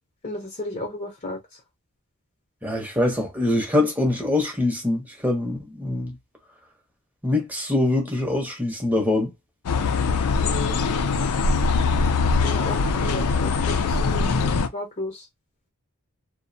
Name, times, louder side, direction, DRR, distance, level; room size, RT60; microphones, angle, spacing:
voice 1, 0.2-1.4 10.4-11.1 12.2-15.3, left 2 dB, 30° left, 0.6 m, -34 dB
voice 2, 2.6-6.2 7.2-9.3, left 2 dB, 10° right, 0.7 m, -24 dB
sound 1, 9.7-14.7, left 4 dB, 75° left, 0.4 m, -22 dB
2.5 x 2.0 x 2.6 m
head